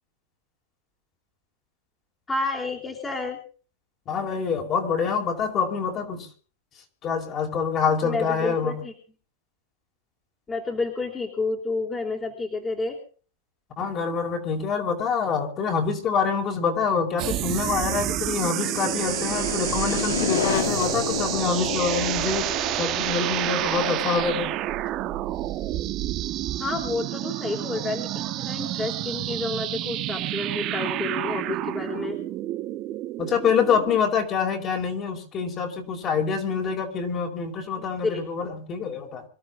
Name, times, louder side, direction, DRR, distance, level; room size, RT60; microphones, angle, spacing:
voice 1, 2.3-3.4 8.0-8.9 10.5-13.0 26.6-32.2 38.0-38.2, left 3 dB, 15° left, 2 dB, 4.0 m, -30 dB
voice 2, 4.1-6.3 7.0-8.8 13.8-22.5 22.8-24.6 33.2-39.2, left 6 dB, 30° left, 3 dB, 5.0 m, -26 dB
sound 1, 17.2-34.0, right 14 dB, 40° right, 1.5 m, -29 dB
sound 2, 17.9-24.7, left 8 dB, 90° left, 2.9 m, -31 dB
26.0 x 12.5 x 3.8 m, 0.40 s
supercardioid pair, 135°, 0 cm